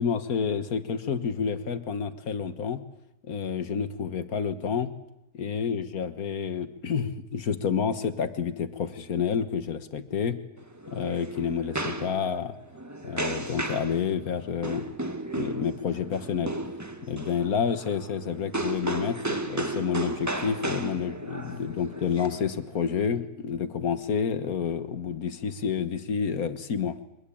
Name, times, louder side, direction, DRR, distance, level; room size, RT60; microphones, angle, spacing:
voice 1, 0.0-2.8 3.2-4.9 5.3-10.4 10.9-12.6 13.0-14.9 15.3-16.6 17.0-27.0, left 6 dB, 50° left, 11 dB, 1.7 m, -29 dB
sound 1, 10.6-23.1, right 2 dB, 10° right, 1.2 m, -34 dB
24.0 x 20.0 x 8.6 m, 0.92 s
omnidirectional pair, 2.2 m